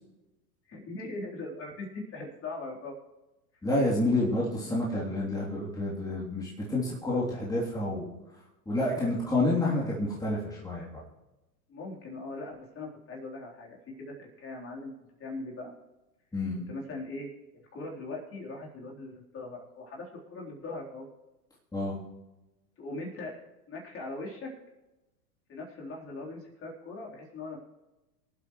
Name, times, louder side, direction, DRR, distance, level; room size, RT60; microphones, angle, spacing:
voice 1, 0.7-2.9 11.7-14.9 15.2-15.7 16.5-17.3 17.7-21.1 22.8-23.4 23.7-24.5 25.5-27.6, left 2 dB, 30° left, -2 dB, 3.8 m, -40 dB
voice 2, 3.6-8.1 8.7-11.0 16.3-16.6 21.7-22.0, left 2 dB, 10° left, -6 dB, 3.1 m, -29 dB
25.5 x 8.5 x 3.2 m, 1.0 s
hypercardioid pair, 100°, 47 cm